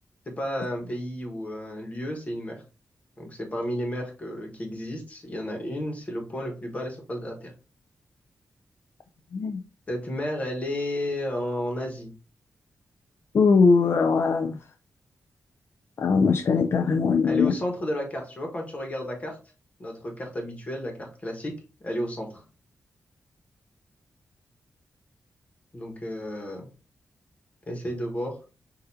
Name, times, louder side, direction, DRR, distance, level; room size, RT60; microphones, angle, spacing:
voice 1, 0.3-2.6 3.2-7.5 9.9-12.1 17.2-19.4 19.8-21.5 21.8-22.4 25.7-26.7 27.7-28.4, equal, 25° left, 2 dB, 1.2 m, -32 dB
voice 2, 13.3-14.6 16.0-17.5, left 5 dB, 50° left, 6 dB, 0.4 m, -21 dB
6.4 x 2.6 x 2.7 m, 0.34 s
wide cardioid pair, 175°, 5 cm